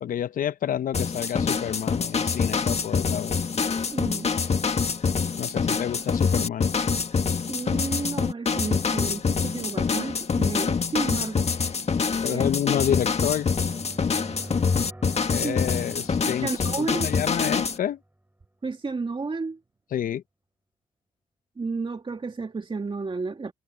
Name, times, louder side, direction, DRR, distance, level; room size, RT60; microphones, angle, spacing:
voice 1, 0.0-3.4 5.4-6.7 12.2-13.5 15.3-16.5 16.8-18.0 19.9-20.2, left 10 dB, 70° left, 0.9 m, -29 dB
sound 1, 0.9-17.8, left 5 dB, 45° left, 1.9 m, -25 dB
voice 2, 3.9-4.3 7.5-11.5 12.3-12.5 15.4-15.6 16.4-17.1 18.6-19.6 21.6-23.5, right 4 dB, 35° right, 2.3 m, -31 dB
sound 2, 8.3-18.4, right 1 dB, 10° right, 7.2 m, -48 dB
supercardioid pair, 50°, 15 cm